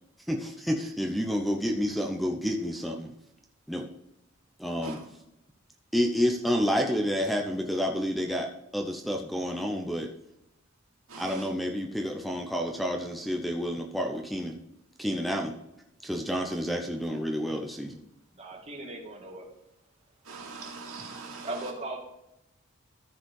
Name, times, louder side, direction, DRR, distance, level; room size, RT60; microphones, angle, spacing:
voice 1, 0.3-3.1 3.7-3.9 4.6-5.0 5.9-10.1 11.2-14.6 15.0-15.6 16.0-18.0, equal, ahead, 0.8 m, -29 dB
voice 2, 11.1-11.5 20.3-21.7, right 4 dB, 90° right, 2.8 m, -42 dB
voice 3, 18.3-19.5 21.4-22.0, right 2 dB, 30° right, 2.5 m, -38 dB
14.0 x 4.9 x 4.8 m
head